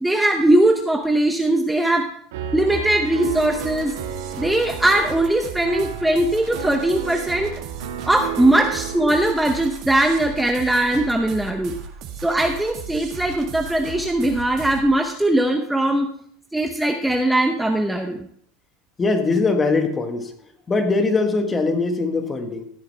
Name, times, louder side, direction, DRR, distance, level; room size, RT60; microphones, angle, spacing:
voice 1, 0.0-2.1 2.5-3.9 4.4-7.5 8.0-11.7 12.2-16.1 16.5-18.2, right 1 dB, 5° right, 4 dB, 0.8 m, -20 dB
Piano, 2.3-9.2, right 8 dB, 90° right, 2.0 m, -32 dB
sound 1, 3.2-14.9, right 7 dB, 50° right, 1.8 m, -37 dB
voice 2, 19.0-22.6, left 3 dB, 20° left, 6 dB, 1.5 m, -21 dB
15.0 x 8.7 x 3.4 m, 0.64 s
supercardioid pair, 130°, 0 cm